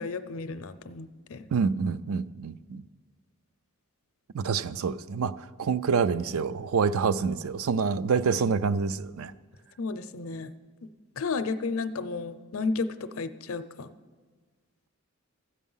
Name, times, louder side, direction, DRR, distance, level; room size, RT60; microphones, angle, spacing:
voice 1, 0.0-1.4 9.8-10.5 11.2-13.9, left 4 dB, 70° left, 12 dB, 0.5 m, -32 dB
voice 2, 1.5-2.8 4.3-9.3, right 5 dB, 70° right, 15 dB, 0.4 m, -27 dB
13.5 x 8.3 x 5.5 m, 1.4 s
head